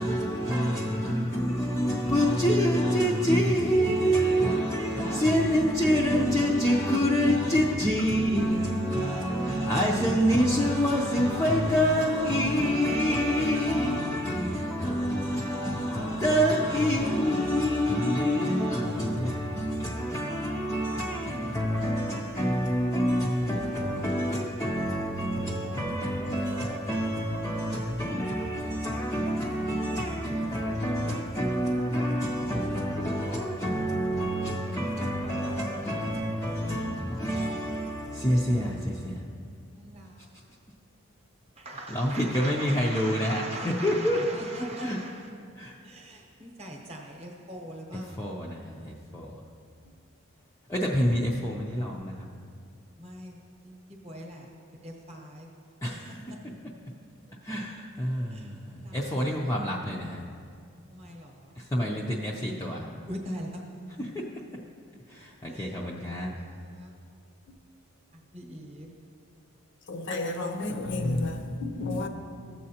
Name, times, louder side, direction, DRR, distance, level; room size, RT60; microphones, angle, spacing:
voice 1, 0.0-39.2 41.9-44.3 44.8-45.0 45.6-45.7 47.9-49.3 50.7-52.3 55.8-56.2 57.4-60.2 61.6-62.9 64.0-64.2 65.1-66.3, equal, 15° left, 0.4 m, -27 dB
voice 2, 39.7-40.1 41.6-45.3 45.8-48.2 53.0-53.4 54.0-54.5 54.8-55.5 56.3-56.4 58.3-58.4 58.8-59.0 60.9-61.3 63.1-63.8 65.5-65.6 66.4-66.5 66.8-66.9 68.3-68.9, right 1 dB, 30° right, 0.9 m, -40 dB
voice 3, 69.9-72.1, left 2 dB, 55° left, 0.6 m, -31 dB
14.0 x 7.5 x 2.8 m
head